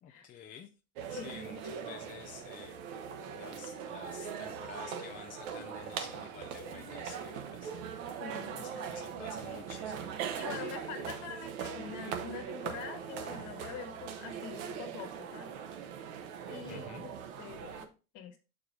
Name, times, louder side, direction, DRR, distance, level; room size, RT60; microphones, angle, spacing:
voice 1, 0.0-0.7 1.1-2.8 3.2-8.2 8.5-10.2 16.7-17.1, left 8 dB, 20° left, 0.5 m, -50 dB
sound 1, 1.0-17.9, right 7 dB, 65° right, 1.2 m, -41 dB
voice 2, 8.2-9.2 10.3-15.5 16.5-18.4, left 7 dB, 45° left, 1.6 m, -45 dB
6.8 x 4.8 x 3.7 m
supercardioid pair, 130°, 43 cm